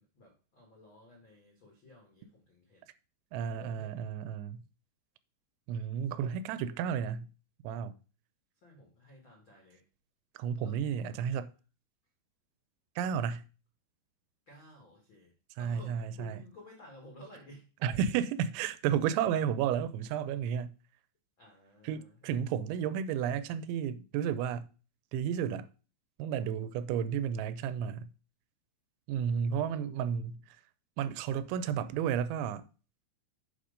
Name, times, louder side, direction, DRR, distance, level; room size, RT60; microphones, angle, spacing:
voice 1, 0.0-2.9 3.4-4.0 8.6-9.8 10.6-10.8 14.5-15.3 15.6-17.6 21.4-22.3, left 1 dB, 70° left, 1.1 m, -55 dB
voice 2, 3.3-4.6 5.7-7.3 7.6-7.9 10.4-11.5 13.0-13.4 15.6-16.4 17.8-20.7 21.8-24.7 25.1-25.7 26.2-28.1 29.1-30.4 31.0-32.6, right 8 dB, 85° right, 2.9 m, -32 dB
7.3 x 5.1 x 5.1 m
omnidirectional pair, 5.3 m